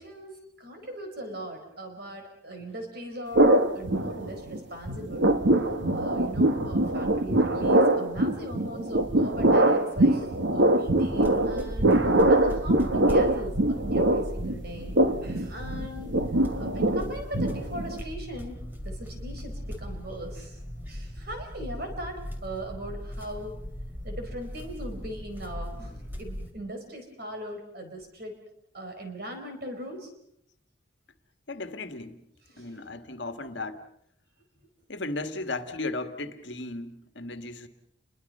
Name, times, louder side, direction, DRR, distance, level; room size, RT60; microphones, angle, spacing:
voice 1, 0.0-5.3 5.9-10.3 10.5-12.0 12.3-14.9 15.2-16.2 16.6-20.6 20.9-23.6 24.0-28.4 28.7-30.1 32.5-32.8, right 1 dB, 50° right, 4.4 m, -39 dB
sound 1, 3.3-4.6 4.9-18.0, right 1 dB, 70° right, 1.6 m, -23 dB
sound 2, 11.1-26.5, equal, 10° right, 2.6 m, -38 dB
voice 2, 31.5-32.2 32.6-33.9 34.9-37.7, left 2 dB, 65° left, 1.8 m, -35 dB
29.5 x 23.0 x 5.5 m
head